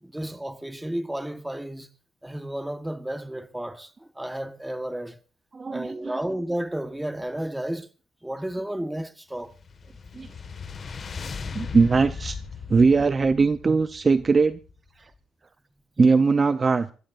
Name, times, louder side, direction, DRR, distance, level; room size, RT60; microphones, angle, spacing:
voice 1, 0.0-1.9 2.2-5.2 5.7-7.9 8.2-9.5, right 1 dB, 5° right, 1.4 m, -32 dB
voice 2, 5.5-6.2 10.1-10.3 11.5-12.4 12.7-14.6 15.0-15.1 16.0-16.9, right 4 dB, 35° right, 0.7 m, -20 dB
sound 1, 9.4-14.9, left 5 dB, 45° left, 1.8 m, -38 dB
25.0 x 14.5 x 2.6 m
cardioid pair, 90°, 0 cm